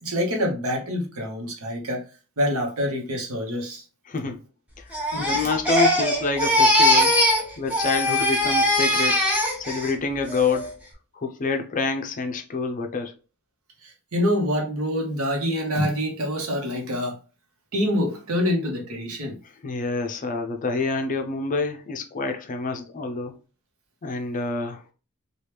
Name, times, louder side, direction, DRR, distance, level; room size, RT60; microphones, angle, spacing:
voice 1, 0.0-2.0 2.4-3.8 5.1-5.2 13.8-17.2 17.7-19.4, equal, 70° right, 1.0 m, -26 dB
voice 2, 4.1-4.4 4.8-7.1 7.6-9.3 9.6-10.7 11.1-13.1 19.6-23.4 24.0-24.8, left 4 dB, 35° left, 0.5 m, -27 dB
Crying sobbing, 4.9-7.4 7.7-9.9 10.3-10.7, left 1 dB, 5° right, 0.8 m, -21 dB
3.0 x 2.3 x 3.3 m
head